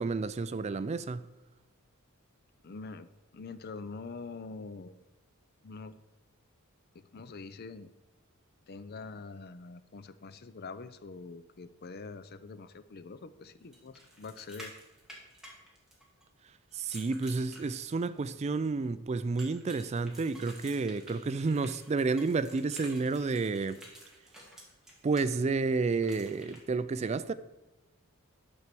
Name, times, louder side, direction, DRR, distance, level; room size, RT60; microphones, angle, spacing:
voice 1, 0.0-1.3 16.7-23.8 25.0-27.3, right 4 dB, 30° right, 0.3 m, -30 dB
voice 2, 2.6-5.0 5.6-6.0 6.9-7.9 8.7-14.7, left 4 dB, 45° left, 0.5 m, -45 dB
sound 1, 13.7-16.2 16.7-18.2 19.4-25.2 26.0-26.6, right 1 dB, ahead, 2.0 m, -51 dB
11.0 x 4.6 x 6.8 m
head